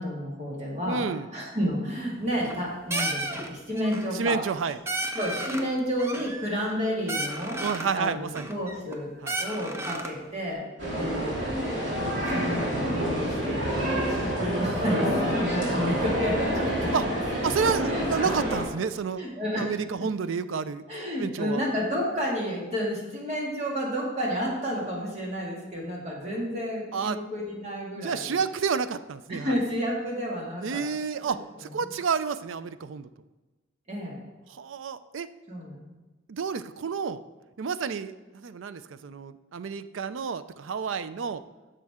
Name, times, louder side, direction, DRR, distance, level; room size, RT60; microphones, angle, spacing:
voice 1, 0.0-1.0 1.3-4.4 5.1-7.6 7.9-9.1 9.4-10.6 10.9-11.4 11.9-16.7 17.4-17.5 17.8-18.1 19.2-19.7 20.9-28.4 29.3-30.8 31.3-31.7 33.9-34.2 35.5-35.9, equal, 35° right, -3 dB, 2.2 m, -31 dB
voice 2, 0.8-1.3 4.1-4.8 7.6-8.5 9.2-9.3 13.7-13.9 16.9-17.1 17.4-19.2 19.6-20.9 21.2-21.6 26.9-27.2 28.0-29.5 30.6-33.1 34.5-35.3 36.3-37.2 37.6-41.4, right 6 dB, 85° right, 13 dB, 0.4 m, -30 dB
sound 1, 2.2-2.6 2.9-3.5 3.8-4.1 4.5-4.6 4.9-5.7 6.0-6.8 7.1-7.9 8.4-9.0 9.3-10.2, right 2 dB, 15° right, 0.6 m, -33 dB
Aarhus Railway Station waiting hall ambience, 10.8-18.6, equal, 60° right, 2.7 m, -28 dB
10.5 x 6.7 x 3.7 m, 1.2 s
head